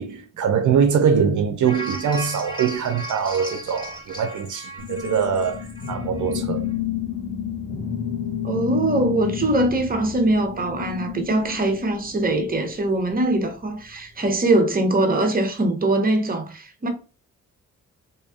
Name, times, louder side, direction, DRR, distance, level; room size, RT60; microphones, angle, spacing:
voice 1, 0.0-6.6, right 7 dB, 70° right, 0.5 m, -23 dB
sound 1, 1.6-6.4 6.7-6.8, right 1 dB, 15° left, 1.4 m, -36 dB
sound 2, 4.8-12.6, left 8 dB, 80° left, 1.1 m, -30 dB
voice 2, 8.4-16.9, right 2 dB, 30° right, 0.9 m, -22 dB
3.1 x 2.7 x 2.2 m
cardioid pair, 75°, 32 cm